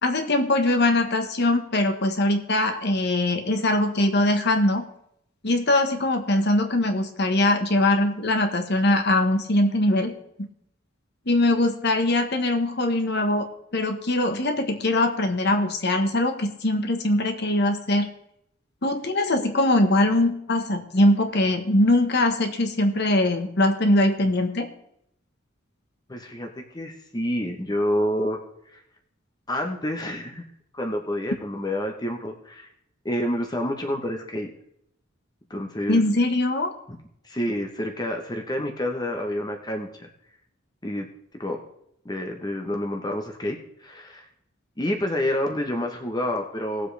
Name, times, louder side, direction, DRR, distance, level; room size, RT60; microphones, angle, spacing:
voice 1, 0.0-4.8 5.4-10.1 10.4-10.5 11.3-18.1 18.8-24.7 35.9-36.7, left 1 dB, 55° left, 6 dB, 1.2 m, -22 dB
voice 2, 26.1-28.4 28.7-28.8 29.5-30.5 30.7-32.7 33.0-34.5 35.5-36.0 36.9-37.0 37.2-40.1 40.8-41.1 41.4-41.6 42.0-44.3 44.8-46.9, left 1 dB, 20° left, 3 dB, 1.0 m, -28 dB
19.0 x 7.6 x 3.4 m, 0.73 s
head